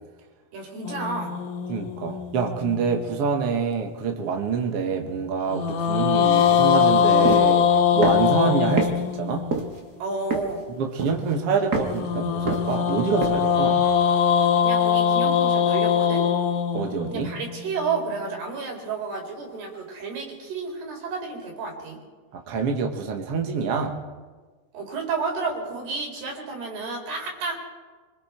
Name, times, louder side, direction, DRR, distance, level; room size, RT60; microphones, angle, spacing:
voice 1, 0.5-1.4 10.0-10.6 14.6-16.2 17.1-22.0 24.7-27.6, right 4 dB, 75° right, 0 dB, 6.1 m, -31 dB
sound 1, 0.8-3.3 5.5-9.7 11.8-18.0, left 8 dB, 70° left, 3.1 m, -22 dB
voice 2, 1.7-7.7 7.9-9.4 10.8-13.8 16.7-17.3 22.3-24.0, right 5 dB, 60° right, 3 dB, 1.6 m, -26 dB
sound 2, 7.2-7.5 8.0-8.3 8.8-8.9 9.5-9.8 10.3-10.6 11.0-11.3 11.7-12.0 12.5-12.9 13.2-13.4, right 4 dB, 45° right, 1.3 m, -26 dB
25.5 x 23.5 x 4.4 m, 1.4 s
omnidirectional pair, 4.7 m